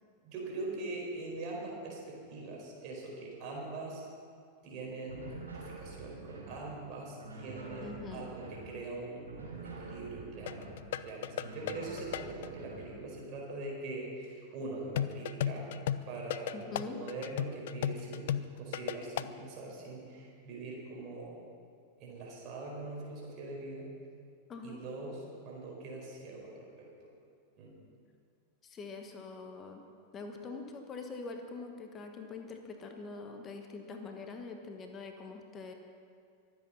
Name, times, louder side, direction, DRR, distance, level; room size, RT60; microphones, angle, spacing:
voice 1, 0.2-4.0 4.6-15.7 16.0-21.4 22.0-23.9 24.6-27.1 27.6-27.8, right 2 dB, 40° right, -2 dB, 4.6 m, -42 dB
sound 1, 5.1-6.6 7.1-8.7 9.2-10.8 11.3-12.9, right 3 dB, 75° right, 4.6 m, -47 dB
voice 2, 7.8-8.3 16.5-17.0 24.5-24.8 28.6-29.8 30.1-35.7, left 4 dB, 25° left, 4 dB, 1.4 m, -44 dB
sound 2, 10.5-12.5 15.0-19.3, left 10 dB, 55° left, 0.4 m, -35 dB
23.5 x 8.2 x 5.7 m, 2.3 s
figure-of-eight pair, 90°, 0 cm